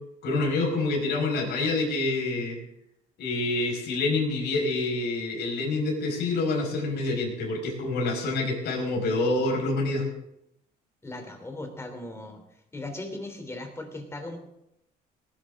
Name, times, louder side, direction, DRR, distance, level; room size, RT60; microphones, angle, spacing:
voice 1, 0.2-2.6 3.2-10.1, left 2 dB, 75° left, 1 dB, 5.3 m, -27 dB
voice 2, 11.0-12.4 12.7-14.4, left 2 dB, 15° left, 5 dB, 3.2 m, -38 dB
19.0 x 11.0 x 3.7 m, 0.78 s
cardioid pair, 110°, 17 cm